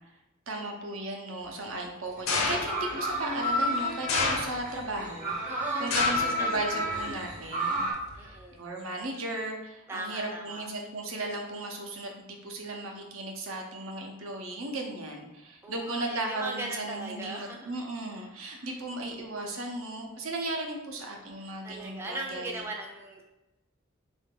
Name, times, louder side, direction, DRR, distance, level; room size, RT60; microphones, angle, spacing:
voice 1, 0.5-7.9 8.2-22.6, right 2 dB, 75° right, 2 dB, 0.7 m, -36 dB
sound 1, 2.2-7.9, left 1 dB, 40° right, 0.8 m, -31 dB
sound 2, 2.3-2.9 4.1-4.9 5.9-6.4 6.8-7.3 8.1-8.2, left 3 dB, 85° left, 0.7 m, -29 dB
voice 2, 5.5-6.5 6.9-7.1 8.1-8.6 9.9-10.7 15.6-17.7 18.2-18.8 21.6-23.2, right 2 dB, 10° right, 0 dB, 0.4 m, -39 dB
3.7 x 2.5 x 3.7 m, 0.98 s
head